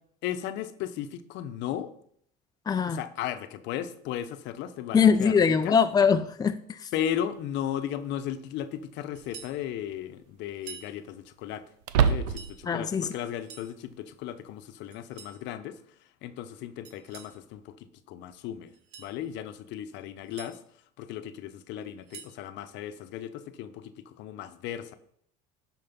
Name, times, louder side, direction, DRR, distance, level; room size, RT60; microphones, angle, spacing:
voice 1, 0.2-1.9 2.9-5.8 6.9-11.7 12.0-18.7 19.0-20.6 21.0-25.0, left 10 dB, 65° left, 0.9 m, -36 dB
voice 2, 2.7-3.0 4.9-6.9 12.7-13.1, left 6 dB, 20° left, 0.6 m, -22 dB
sound 1, 7.2-7.3 9.1-9.6 9.9-10.0 11.8-12.7, right 7 dB, 90° right, 0.6 m, -26 dB
sound 2, 9.1-9.6 10.5-10.9 12.1-12.6 13.2-13.7 14.9-15.4 16.8-17.4 18.7-19.1 20.0-20.5 21.8-22.4, right 7 dB, 70° right, 1.4 m, -47 dB
12.0 x 4.7 x 5.4 m
supercardioid pair, 90°, 20 cm